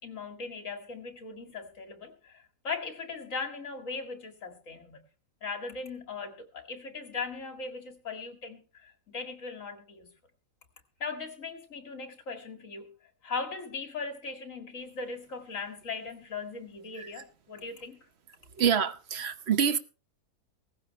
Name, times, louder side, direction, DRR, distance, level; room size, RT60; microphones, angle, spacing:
voice 1, 0.0-5.0 5.4-10.1 11.0-12.9 13.2-18.0, left 4 dB, 55° left, 2.4 m, -39 dB
voice 2, 18.6-19.8, right 7 dB, 50° right, 1.1 m, -26 dB
17.5 x 15.0 x 3.2 m
omnidirectional pair, 1.6 m